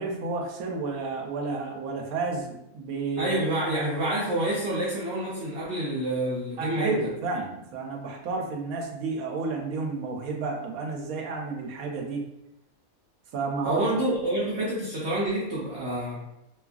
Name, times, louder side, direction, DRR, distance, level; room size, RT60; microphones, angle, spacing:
voice 1, 0.0-3.3 6.6-12.3 13.3-13.8, right 3 dB, 80° right, 1 dB, 1.0 m, -31 dB
voice 2, 3.2-7.1 13.6-16.2, right 1 dB, 65° right, -6 dB, 0.7 m, -28 dB
2.8 x 2.3 x 2.3 m, 0.86 s
omnidirectional pair, 1.5 m